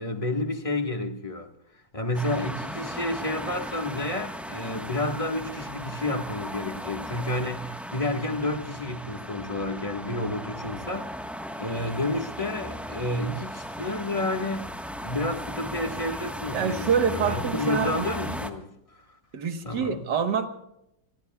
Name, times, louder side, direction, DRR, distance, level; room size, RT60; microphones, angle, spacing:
voice 1, 0.0-1.5 1.9-14.7 15.0-18.7 19.6-20.0, left 2 dB, 20° left, 1.5 m, -30 dB
sound 1, 2.1-18.5, equal, ahead, 1.0 m, -37 dB
voice 2, 16.5-18.4 19.3-20.5, right 7 dB, 65° right, 1.9 m, -26 dB
28.0 x 21.0 x 2.3 m
omnidirectional pair, 2.0 m